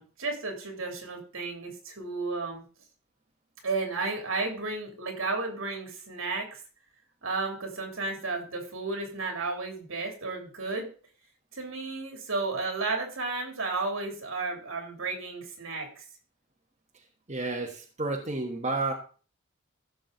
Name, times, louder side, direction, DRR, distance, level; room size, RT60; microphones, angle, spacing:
voice 1, 0.0-2.6 3.6-6.6 7.2-10.9 11.5-16.0, right 3 dB, 75° right, 3 dB, 3.0 m, -33 dB
voice 2, 17.3-18.9, right 2 dB, 35° right, 0 dB, 1.2 m, -31 dB
15.0 x 6.3 x 3.9 m, 0.38 s
head